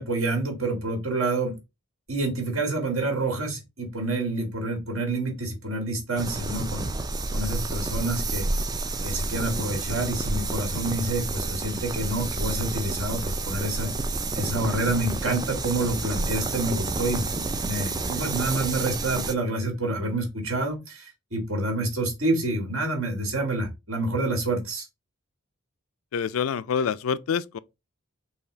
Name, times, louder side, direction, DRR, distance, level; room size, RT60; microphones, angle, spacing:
voice 1, 0.0-1.6 2.1-6.9 7.3-8.5 9.0-13.9 14.4-24.9, right 2 dB, 75° right, 2.0 m, -28 dB
sound 1, 6.2-19.3, right 3 dB, 20° right, 0.3 m, -30 dB
voice 2, 26.1-27.6, left 7 dB, 80° left, 0.4 m, -26 dB
5.6 x 2.4 x 3.9 m
head